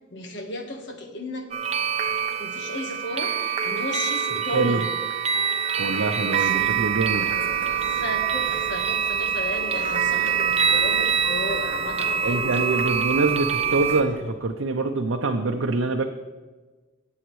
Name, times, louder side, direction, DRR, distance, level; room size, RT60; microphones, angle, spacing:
voice 1, 0.1-1.5 2.4-4.9 6.1-6.9 7.9-12.7, left 1 dB, 60° left, 4 dB, 1.3 m, -34 dB
sound 1, 1.5-14.0, right 8 dB, 30° right, 0.7 m, -25 dB
voice 2, 5.8-7.3 12.2-16.1, right 3 dB, 90° right, 3 dB, 0.6 m, -24 dB
sound 2, 6.5-14.2, left 4 dB, 40° left, 1.2 m, -38 dB
18.0 x 7.2 x 3.2 m, 1.3 s
head